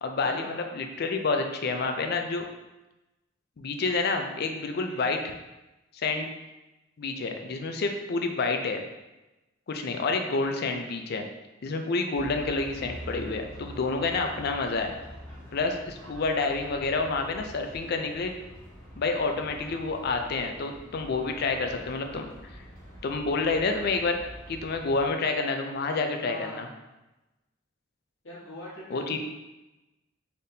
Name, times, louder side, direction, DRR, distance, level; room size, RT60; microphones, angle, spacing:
voice 1, 0.0-2.5 3.6-5.2 5.9-6.3 7.0-8.8 9.7-11.2 11.6-14.9 15.5-18.3 19.0-22.3 23.0-24.2 24.5-26.7 28.9-29.2, left 3 dB, 55° left, 5 dB, 0.4 m, -28 dB
voice 2, 4.7-5.0 26.2-26.7 28.2-29.2, left 1 dB, 70° left, -7 dB, 1.5 m, -42 dB
sound 1, 12.1-25.1, equal, 10° left, 1.4 m, -46 dB
4.0 x 3.5 x 2.7 m, 1.0 s
head